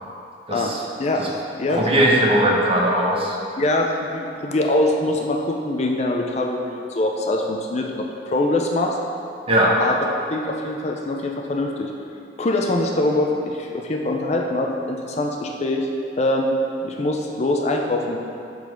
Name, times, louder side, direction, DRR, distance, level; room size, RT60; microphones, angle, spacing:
voice 1, 0.5-0.8 1.2-1.3 1.7-3.4 9.5-9.8, right 1 dB, 30° right, -2 dB, 0.8 m, -19 dB
voice 2, 1.0-1.8 3.6-9.0 9.8-10.0 10.3-11.9 12.4-15.9 16.2-18.2, left 1 dB, 35° left, 1 dB, 0.5 m, -23 dB
7.4 x 4.0 x 5.1 m, 2.7 s
head